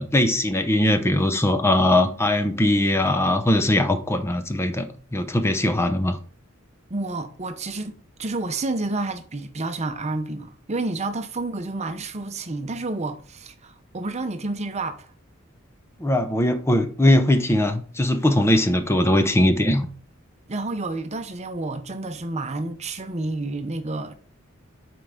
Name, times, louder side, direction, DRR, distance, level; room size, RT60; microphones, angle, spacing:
voice 1, 0.0-6.2 16.0-19.9, left 1 dB, 10° left, 0.7 m, -20 dB
voice 2, 6.9-7.9 8.2-15.1 20.5-24.1, right 2 dB, 30° right, 0.8 m, -30 dB
7.5 x 4.7 x 3.8 m
head